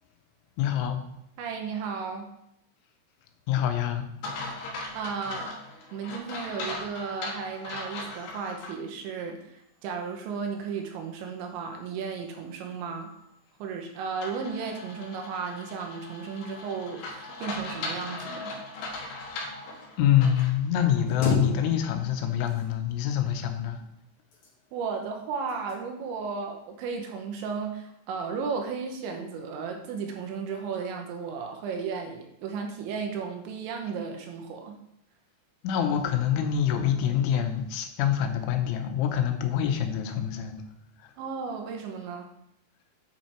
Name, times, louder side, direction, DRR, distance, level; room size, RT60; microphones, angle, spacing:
voice 1, 0.6-1.0 3.5-4.0 20.0-23.8 35.6-40.5, left 9 dB, 85° left, 6 dB, 3.2 m, -25 dB
voice 2, 1.4-2.3 4.9-5.5 5.9-13.1 13.6-18.5 24.7-34.8 41.2-42.3, right 5 dB, 75° right, 3 dB, 3.1 m, -34 dB
sound 1, 4.2-8.7 9.2-9.3 14.2-20.6, left 2 dB, 65° left, 3.0 m, -38 dB
sound 2, 21.1-22.1 22.4-23.2 24.1-24.9 25.5-25.8 26.3-26.5, left 3 dB, 40° left, 2.3 m, -33 dB
8.2 x 5.7 x 4.4 m, 0.79 s
omnidirectional pair, 5.5 m